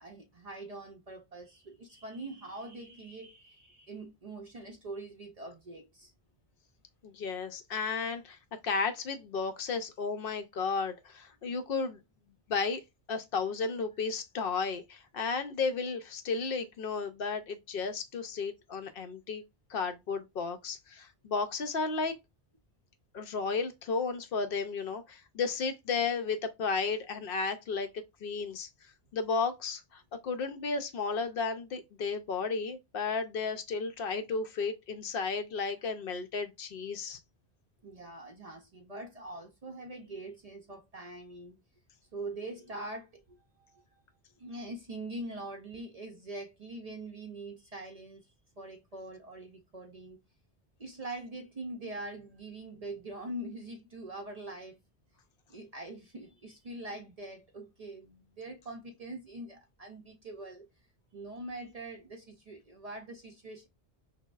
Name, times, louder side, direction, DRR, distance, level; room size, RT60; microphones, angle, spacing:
voice 1, 0.0-6.1 37.8-41.6 42.1-43.8 44.4-50.2 50.8-54.8 55.5-60.7 61.1-63.7, right 2 dB, 50° right, 0.5 m, -43 dB
voice 2, 7.0-8.4 8.6-12.0 12.5-12.8 13.1-19.4 19.7-22.1 23.1-27.9 28.2-28.7 29.1-37.2, left 4 dB, 65° left, 0.7 m, -33 dB
5.9 x 2.1 x 2.3 m
omnidirectional pair, 1.1 m